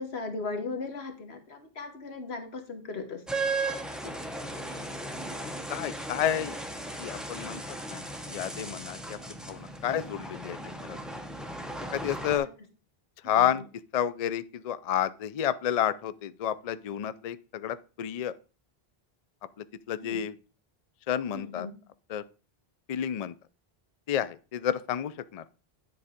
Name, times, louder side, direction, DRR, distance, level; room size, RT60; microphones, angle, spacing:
voice 1, 0.0-3.2 9.8-10.2 12.2-12.5 13.2-13.6 20.0-20.2 21.3-21.8, left 3 dB, 85° left, 1.5 m, -38 dB
sound 1, 3.3-12.4, right 2 dB, ahead, 0.7 m, -36 dB
voice 2, 5.4-6.6 7.0-7.6 7.9-8.0 8.3-9.2 9.5-10.6 10.9-11.0 11.9-12.5 13.2-13.6 13.9-18.3 19.6-20.3 21.1-21.7 22.1-22.2 22.9-23.3 24.1-25.4, left 10 dB, 55° left, 0.4 m, -30 dB
9.9 x 4.1 x 5.0 m
omnidirectional pair, 1.0 m